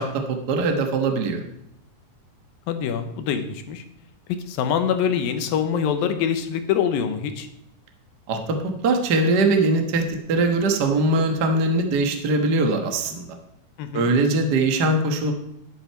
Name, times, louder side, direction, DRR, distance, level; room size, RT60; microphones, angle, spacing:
voice 1, 0.0-1.4 8.3-13.4 13.9-15.3, right 2 dB, 65° right, 4 dB, 1.0 m, -21 dB
voice 2, 2.7-3.8 4.3-7.5 13.8-14.1, left 8 dB, 90° left, 8 dB, 2.8 m, -24 dB
11.5 x 8.8 x 4.5 m, 0.80 s
omnidirectional pair, 4.0 m